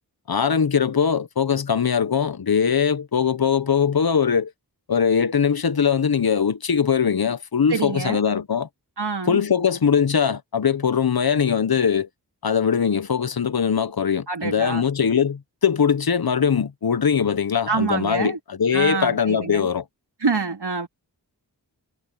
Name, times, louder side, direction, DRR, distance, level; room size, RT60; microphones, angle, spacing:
voice 1, 0.3-4.5 4.9-8.7 9.3-12.1 12.4-19.8, left 7 dB, 65° left, 1.0 m, -21 dB
voice 2, 7.7-8.2 9.0-9.4 14.3-14.8 17.7-18.4 18.7-19.7 20.2-20.9, right 5 dB, 80° right, 3.8 m, -26 dB
wide cardioid pair, 70°, 40 cm